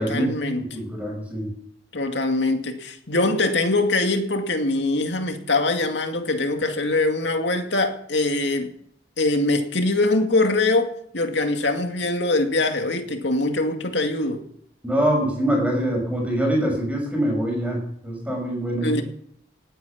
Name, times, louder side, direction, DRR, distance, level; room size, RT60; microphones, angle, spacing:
voice 1, 0.0-0.6 1.9-8.7 9.2-14.4 18.8-19.0, left 2 dB, 75° left, 2.3 m, -23 dB
voice 2, 0.6-1.5 14.8-19.0, right 1 dB, 5° right, 5.7 m, -24 dB
18.5 x 9.7 x 7.0 m
head